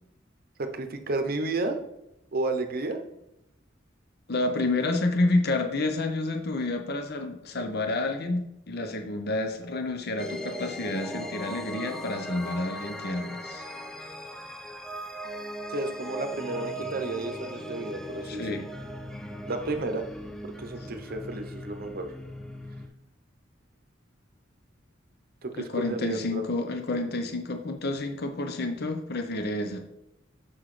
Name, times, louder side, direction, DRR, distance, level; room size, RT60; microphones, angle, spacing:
voice 1, 0.6-1.8 2.3-3.0 15.7-18.7 19.5-20.1 20.4-22.1 25.4-26.4, right 2 dB, 50° right, 7 dB, 0.8 m, -32 dB
voice 2, 4.3-13.7 18.2-18.6 25.6-29.8, left 2 dB, 55° left, 5 dB, 0.8 m, -29 dB
sound 1, 10.2-22.9, equal, 5° left, 0.5 m, -38 dB
6.1 x 6.0 x 3.2 m, 0.84 s
head